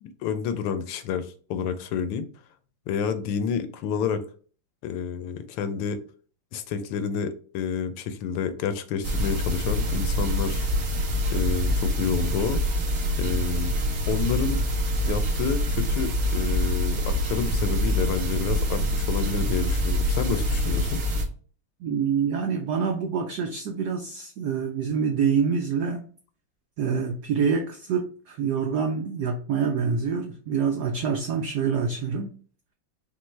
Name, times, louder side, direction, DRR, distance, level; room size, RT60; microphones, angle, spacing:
voice 1, 0.0-2.3 2.9-4.2 4.8-6.0 6.5-10.6 11.3-12.6 13.2-13.8 14.1-14.6 15.0-21.0, left 7 dB, 85° left, 1.5 m, -29 dB
sound 1, 9.0-21.2, equal, 45° right, 1.5 m, -25 dB
voice 2, 21.8-26.1 26.8-32.4, right 6 dB, 75° right, 0.9 m, -26 dB
5.3 x 2.8 x 3.2 m
omnidirectional pair, 2.4 m